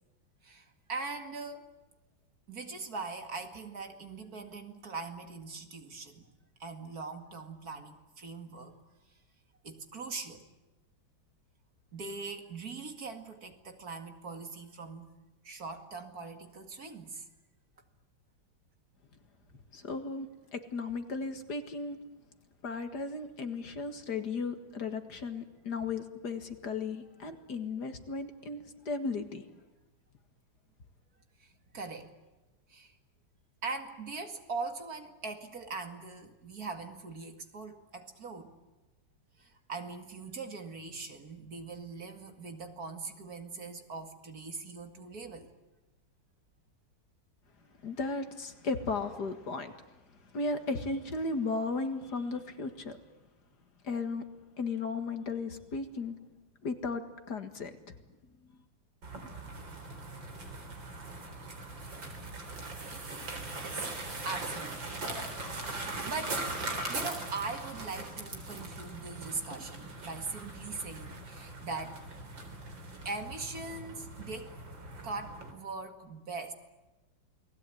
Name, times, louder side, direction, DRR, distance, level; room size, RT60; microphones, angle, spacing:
voice 1, 0.4-1.7 2.5-6.3 6.6-8.8 9.6-10.4 11.9-15.1 15.4-17.3 31.4-32.1 32.7-33.0 33.6-38.5 39.4-45.5 63.6-63.9 64.2-65.0 65.7-66.5 66.9-72.0 73.0-74.6 75.0-76.5, right 4 dB, 50° right, 6 dB, 2.5 m, -41 dB
voice 2, 19.7-22.0 22.6-29.5 47.8-49.7 50.3-53.0 53.8-54.2 54.6-56.1 56.6-58.0, left 3 dB, 55° left, 8 dB, 2.3 m, -35 dB
sound 1, 59.0-75.5, right 2 dB, 65° right, 4.6 m, -40 dB
29.0 x 20.0 x 9.3 m, 1.1 s
omnidirectional pair, 2.2 m